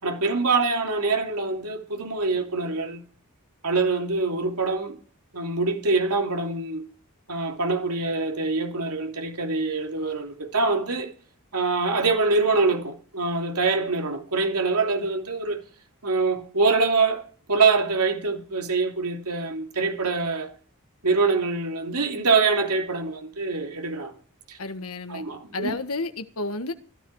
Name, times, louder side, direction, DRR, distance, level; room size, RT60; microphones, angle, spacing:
voice 1, 0.0-3.1 3.6-5.0 5.3-6.9 7.3-11.1 11.5-15.6 16.0-20.5 21.0-24.1 24.5-24.6 25.1-25.7, right 3 dB, 90° right, 3.1 m, -24 dB
voice 2, 24.6-25.2 25.5-26.7, left 2 dB, 70° left, 1.6 m, -31 dB
16.0 x 13.5 x 4.8 m
head